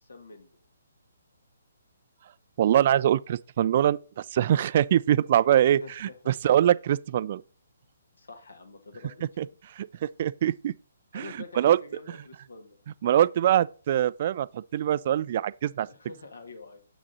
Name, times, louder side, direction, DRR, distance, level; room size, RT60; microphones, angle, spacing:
voice 1, 0.0-0.5 5.8-6.2 8.2-9.6 11.1-12.8 15.8-16.8, left 3 dB, 75° left, 2.2 m, -46 dB
voice 2, 2.6-7.4 9.4-9.5 9.8-10.7 11.1-11.8 13.0-15.9, right 11 dB, 45° right, 0.3 m, -23 dB
7.3 x 6.1 x 4.0 m
figure-of-eight pair, 135°, 0 cm